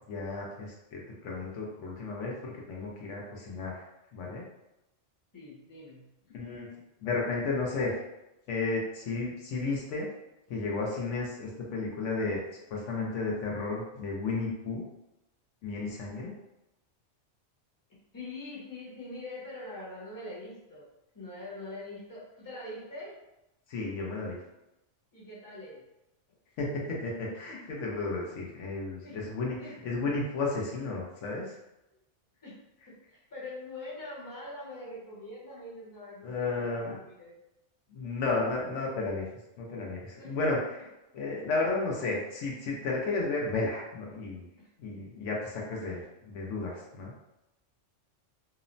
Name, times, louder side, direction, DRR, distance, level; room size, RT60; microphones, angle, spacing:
voice 1, 0.1-3.8 4.1-4.4 6.3-6.7 7.0-8.0 8.5-10.1 10.5-12.4 12.7-14.8 15.6-16.3 23.7-24.4 26.6-31.5 36.2-37.0 37.9-39.2 39.6-40.8 41.1-44.4 44.8-47.1, left 3 dB, 75° left, -2 dB, 1.0 m, -33 dB
voice 2, 5.3-6.1 18.1-20.9 21.1-23.2 25.1-25.9 29.0-29.2 29.6-29.8 32.4-32.6 32.9-37.3 40.2-40.3 44.6-44.7, left 2 dB, 20° left, -7 dB, 0.7 m, -43 dB
2.9 x 2.0 x 2.5 m, 0.91 s
omnidirectional pair, 1.3 m